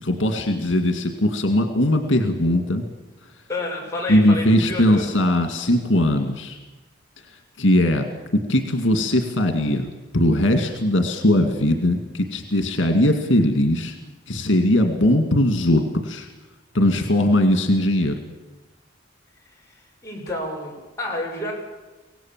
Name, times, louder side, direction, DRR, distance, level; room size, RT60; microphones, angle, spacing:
voice 1, 0.0-2.8 4.1-6.6 7.6-8.1 8.3-9.9 10.1-14.0 14.3-16.3 16.7-18.2, left 1 dB, 80° left, 6 dB, 2.1 m, -20 dB
voice 2, 3.5-5.0 20.0-21.5, left 1 dB, 15° left, -2 dB, 6.3 m, -29 dB
24.5 x 18.0 x 7.4 m, 1.1 s
head